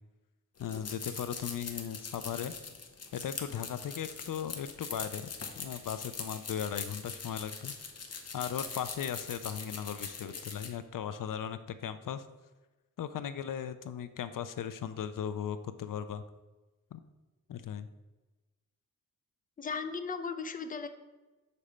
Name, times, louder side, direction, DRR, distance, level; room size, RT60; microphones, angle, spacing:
voice 1, 0.6-2.5 3.1-5.3 5.6-7.7 8.3-12.2 13.0-16.2 16.9-17.0 17.5-17.9, left 8 dB, 80° left, 12 dB, 0.5 m, -37 dB
sound 1, 0.6-10.7, left 5 dB, 50° left, 0.8 m, -42 dB
voice 2, 19.6-20.9, left 5 dB, 25° left, 8 dB, 0.5 m, -36 dB
6.8 x 4.2 x 5.0 m, 1.2 s
wide cardioid pair, 135°, 32 cm